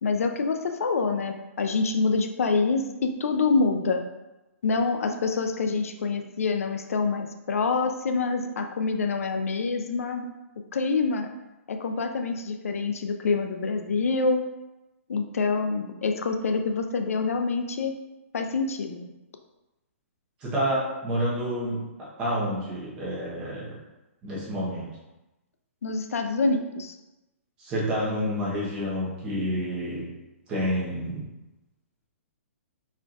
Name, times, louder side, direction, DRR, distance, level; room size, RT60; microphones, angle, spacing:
voice 1, 0.0-4.0 4.6-10.3 10.7-11.3 11.7-14.4 15.1-17.9 18.3-19.1 25.8-27.0, left 4 dB, 80° left, 5 dB, 0.6 m, -26 dB
voice 2, 20.4-23.7 24.2-24.9 27.6-30.1 30.5-31.3, equal, 15° right, -7 dB, 1.1 m, -29 dB
4.6 x 4.4 x 2.5 m, 1.0 s
hypercardioid pair, 175°, 8 cm